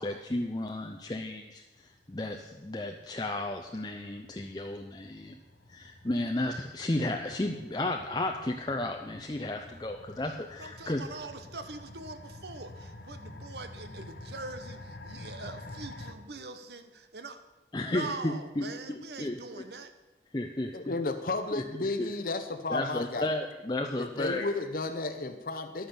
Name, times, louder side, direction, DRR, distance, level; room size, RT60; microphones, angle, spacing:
voice 1, 0.0-5.4 5.7-11.0 17.7-19.4 20.3-20.7 21.5-21.6 22.0-22.1 22.7-24.5, left 1 dB, 25° left, 3 dB, 0.6 m, -33 dB
sound 1, 1.8-16.1, left 2 dB, 75° left, 1.2 m, -49 dB
voice 2, 10.6-17.4 17.8-19.9, right 3 dB, 70° right, 9 dB, 1.1 m, -43 dB
voice 3, 20.7-23.3 24.0-25.9, left 3 dB, 55° left, 7 dB, 0.9 m, -33 dB
11.5 x 9.1 x 7.1 m, 1.1 s
head